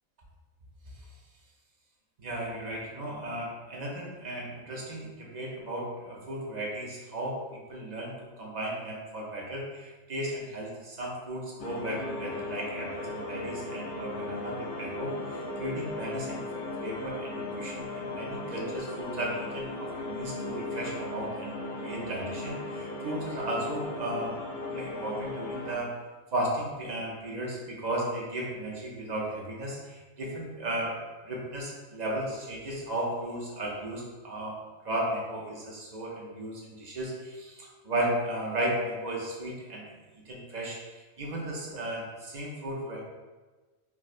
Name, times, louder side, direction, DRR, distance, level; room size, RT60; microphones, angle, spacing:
voice 1, 2.2-24.4 24.7-26.0 26.3-31.0 31.2-34.6 34.8-43.0, right 1 dB, 55° right, -3 dB, 0.5 m, -35 dB
sound 1, 11.6-25.7, left 2 dB, 70° left, 0.4 m, -37 dB
4.5 x 2.1 x 2.4 m, 1.3 s
omnidirectional pair, 1.4 m